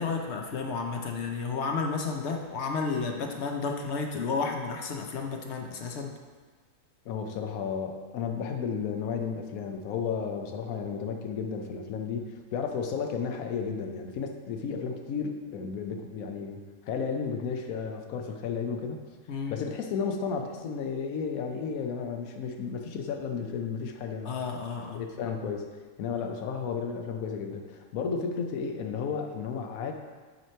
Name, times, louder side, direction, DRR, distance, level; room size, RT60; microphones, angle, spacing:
voice 1, 0.0-6.1 19.3-19.6 24.2-25.0, left 4 dB, 60° left, 3 dB, 0.9 m, -32 dB
voice 2, 7.1-19.0 19.5-24.3 24.9-25.7 26.0-29.9, left 6 dB, 85° left, 4 dB, 1.1 m, -33 dB
8.2 x 3.0 x 4.3 m, 1.4 s
omnidirectional pair, 1.4 m